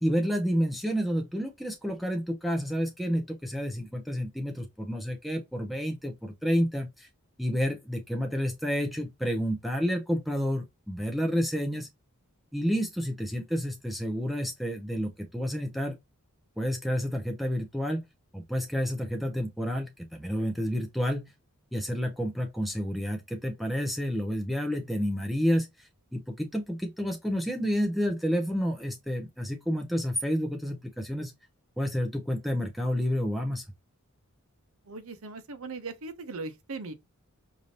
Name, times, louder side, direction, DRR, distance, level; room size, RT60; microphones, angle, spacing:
voice 1, 0.0-7.1 7.4-11.9 12.5-16.0 16.6-18.0 18.3-21.3 21.7-31.3 31.8-33.6, equal, ahead, 0.5 m, -30 dB
voice 2, 34.9-36.9, right 3 dB, 70° right, 0.8 m, -39 dB
4.9 x 2.6 x 2.6 m
head